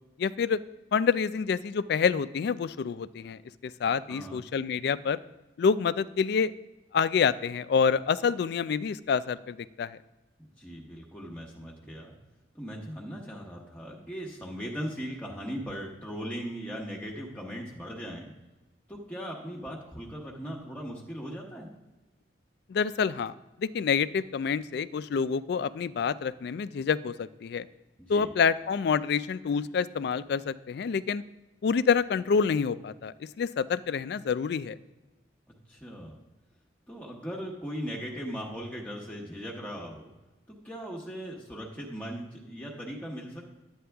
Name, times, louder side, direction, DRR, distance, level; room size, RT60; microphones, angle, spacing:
voice 1, 0.2-0.6 0.9-5.2 5.6-6.5 6.9-10.0 22.7-23.3 23.6-27.7 28.1-31.2 31.6-34.8, left 6 dB, 60° left, 17 dB, 0.3 m, -27 dB
voice 2, 4.1-4.4 10.4-12.1 12.5-18.3 18.9-21.7 28.0-28.3 35.7-36.2 36.9-40.1 40.5-43.5, equal, 10° left, -2 dB, 1.0 m, -39 dB
11.0 x 8.6 x 3.4 m, 1.1 s
head